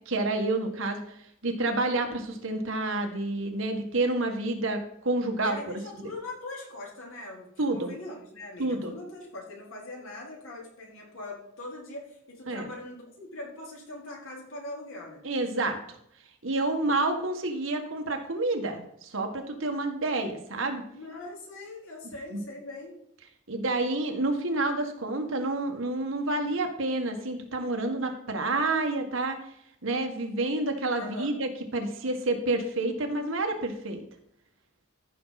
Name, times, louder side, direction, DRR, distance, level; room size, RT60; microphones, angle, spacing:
voice 1, 0.1-1.0 1.4-5.6 6.0-6.1 7.6-7.9 8.6-8.9 12.5-12.6 15.2-15.8 16.4-20.8 22.3-22.4 23.5-29.4 29.8-34.0, right 2 dB, 75° right, 4 dB, 1.8 m, -29 dB
voice 2, 5.4-15.2 20.9-23.0 31.0-31.4, left 2 dB, 85° left, -2 dB, 4.2 m, -41 dB
14.5 x 6.2 x 4.2 m, 0.72 s
head